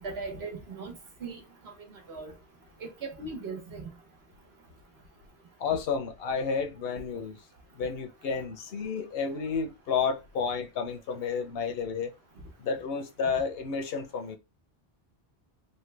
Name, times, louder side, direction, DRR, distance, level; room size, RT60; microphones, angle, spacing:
voice 1, 0.0-0.9 1.2-1.7 2.1-2.3 2.8-3.8, right 4 dB, 90° right, 1.2 m, -38 dB
voice 2, 5.6-7.4 7.8-12.1 12.6-14.4, left 5 dB, 75° left, 0.9 m, -31 dB
3.2 x 2.2 x 3.2 m
omnidirectional pair, 1.0 m